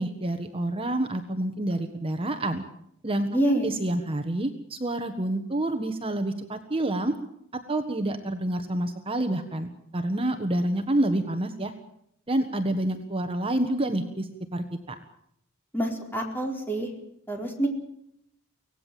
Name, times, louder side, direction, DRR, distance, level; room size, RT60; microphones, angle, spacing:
voice 1, 0.0-2.6 3.0-3.3 3.5-7.1 7.7-11.7 12.3-14.9, right 1 dB, 25° right, 6 dB, 1.5 m, -28 dB
voice 2, 3.3-3.7 15.7-16.9 17.3-17.7, right 1 dB, 10° left, 1 dB, 4.3 m, -26 dB
25.0 x 18.0 x 7.7 m, 0.72 s
head